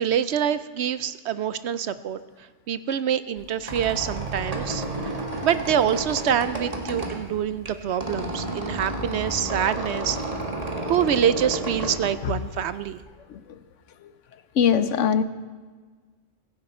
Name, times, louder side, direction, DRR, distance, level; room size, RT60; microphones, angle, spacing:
voice 1, 0.0-2.2 2.7-5.2 5.4-10.2 10.9-13.0, right 9 dB, 65° right, 14 dB, 0.8 m, -25 dB
Squeak, 3.4-13.0, right 1 dB, 30° right, 1.7 m, -32 dB
voice 2, 14.6-15.2, left 7 dB, 75° left, 13 dB, 1.0 m, -20 dB
16.0 x 16.0 x 4.3 m, 1.4 s
omnidirectional pair, 1.3 m